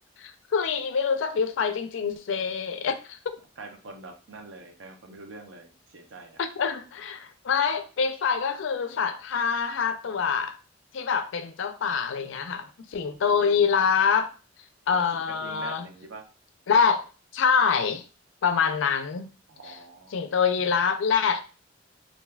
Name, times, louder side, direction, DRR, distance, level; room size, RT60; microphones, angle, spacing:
voice 1, 0.2-3.4 6.4-10.6 10.9-14.3 14.9-15.9 16.7-17.1 17.3-18.0 18.4-19.3 19.7-19.8 20.1-21.4, left 6 dB, 70° left, 0.4 m, -25 dB
voice 2, 3.6-6.4 14.9-16.2 19.5-20.2, right 3 dB, 65° right, 0.6 m, -44 dB
2.6 x 2.3 x 3.2 m
head